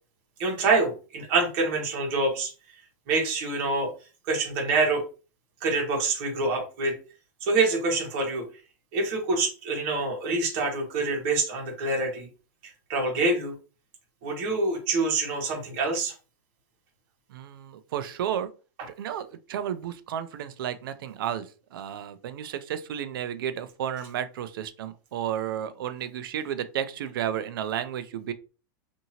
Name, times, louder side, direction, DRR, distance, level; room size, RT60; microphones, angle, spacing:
voice 1, 0.4-2.5 3.1-3.9 4.3-5.0 5.6-7.0 7.4-8.5 8.9-12.3 12.9-13.5 14.2-16.1, right 3 dB, 40° right, 1.2 m, -26 dB
voice 2, 17.3-18.5 19.0-28.3, right 9 dB, 90° right, 0.5 m, -32 dB
2.7 x 2.6 x 2.8 m
supercardioid pair, 175°, 11 cm